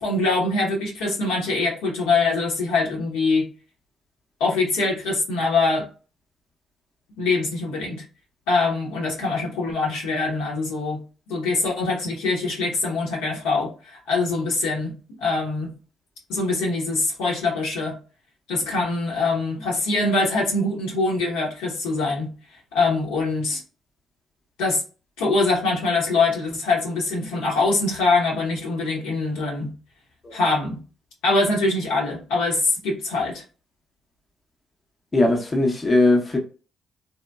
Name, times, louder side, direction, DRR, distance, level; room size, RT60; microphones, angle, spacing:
voice 1, 0.0-3.5 4.4-5.9 7.2-8.0 8.5-15.8 16.3-18.0 18.5-22.3 22.7-23.6 24.6-24.8 25.2-29.8 30.3-30.8 31.2-33.4, left 3 dB, 80° left, 0.9 m, -23 dB
voice 2, 35.1-36.4, left 2 dB, 30° left, 0.7 m, -19 dB
2.9 x 2.1 x 2.2 m
hypercardioid pair, 50°, 0 cm